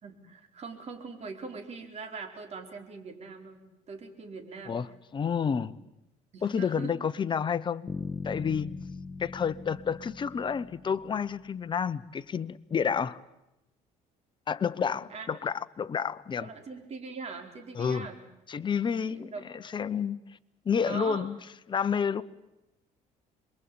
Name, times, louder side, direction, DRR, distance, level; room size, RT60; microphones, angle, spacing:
voice 1, 0.0-4.8 5.5-5.7 6.3-6.9 14.6-15.3 16.4-18.2 19.1-19.4 20.8-21.3, right 4 dB, 45° right, 5 dB, 4.6 m, -42 dB
voice 2, 5.1-5.7 6.4-7.9 8.2-8.7 9.2-13.2 14.5-16.5 17.7-18.1 18.5-20.2 20.6-21.4 21.7-22.2, left 7 dB, 30° left, 12 dB, 1.0 m, -30 dB
Bass guitar, 7.9-11.8, left 4 dB, 15° left, 1.3 m, -40 dB
27.0 x 22.5 x 8.9 m, 0.91 s
cardioid pair, 115°, 15 cm